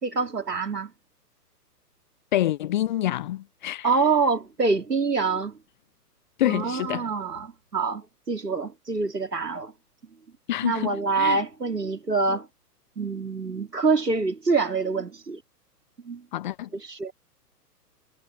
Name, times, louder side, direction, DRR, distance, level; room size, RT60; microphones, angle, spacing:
voice 1, 0.0-0.9 3.8-5.6 6.4-9.7 10.6-12.5 13.0-15.4 16.0-16.2 16.7-17.1, right 4 dB, 80° right, 2.9 m, -26 dB
voice 2, 2.3-3.9 6.4-7.1 10.5-10.9 11.1-11.4 16.3-16.7, left 13 dB, 30° left, 0.7 m, -26 dB
figure-of-eight pair, 115°, 48 cm